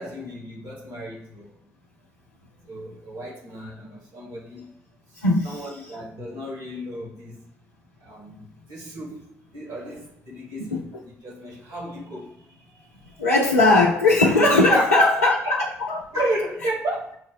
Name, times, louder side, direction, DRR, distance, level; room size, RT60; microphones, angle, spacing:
voice 1, 0.0-1.6 2.7-4.7 5.4-7.4 8.0-13.2 14.7-15.7 16.1-17.2, right 1 dB, 65° right, -3 dB, 1.8 m, -33 dB
voice 2, 5.2-5.6 10.7-10.8 13.2-15.6 15.9-16.2, left 2 dB, 90° left, -5 dB, 0.5 m, -19 dB
5.8 x 2.1 x 4.1 m, 0.71 s
figure-of-eight pair, 40°, 7 cm